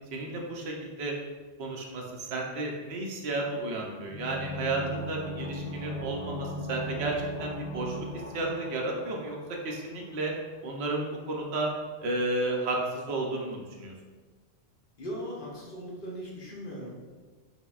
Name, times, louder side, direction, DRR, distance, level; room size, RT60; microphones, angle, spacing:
voice 1, 0.1-1.2 1.6-8.0 8.3-9.4 9.6-10.3 10.6-11.7 12.0-13.9, right 2 dB, 75° right, 0 dB, 0.8 m, -32 dB
sound 1, 4.0-9.7 10.0-10.1, right 1 dB, 85° left, 1.0 m, -38 dB
voice 2, 15.0-17.1, equal, 55° left, -3 dB, 0.9 m, -39 dB
5.4 x 2.1 x 2.3 m, 1.4 s
omnidirectional pair, 1.1 m